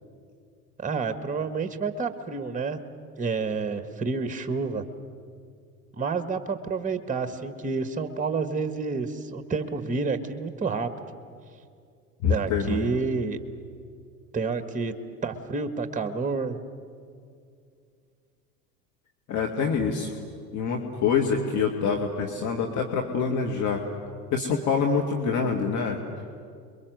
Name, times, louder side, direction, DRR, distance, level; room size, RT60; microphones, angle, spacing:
voice 1, 0.8-2.8 3.2-4.8 5.9-10.9 12.3-13.4 14.3-14.9 15.2-16.6, right 4 dB, 15° right, 10 dB, 1.7 m, -29 dB
voice 2, 12.2-12.8 19.3-20.1 20.5-23.8 24.3-26.0, left 5 dB, 35° left, 2 dB, 2.4 m, -25 dB
29.5 x 22.5 x 8.0 m, 2.3 s
figure-of-eight pair, 80°, 48 cm